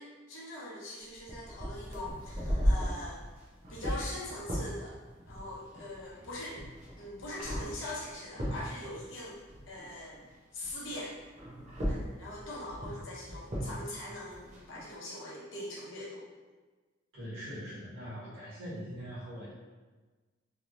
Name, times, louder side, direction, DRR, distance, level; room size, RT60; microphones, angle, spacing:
voice 1, 0.0-3.2 3.7-5.0 5.3-6.7 7.0-9.4 9.7-10.2 10.5-11.2 11.8-16.3 18.2-18.3, left 1 dB, 85° left, -5 dB, 1.0 m, -42 dB
sound 1, 1.1-10.3 10.6-14.8, equal, 35° right, 0.8 m, -36 dB
voice 2, 17.1-19.5, equal, 80° right, -11 dB, 1.5 m, -42 dB
3.5 x 2.9 x 2.5 m, 1.3 s
head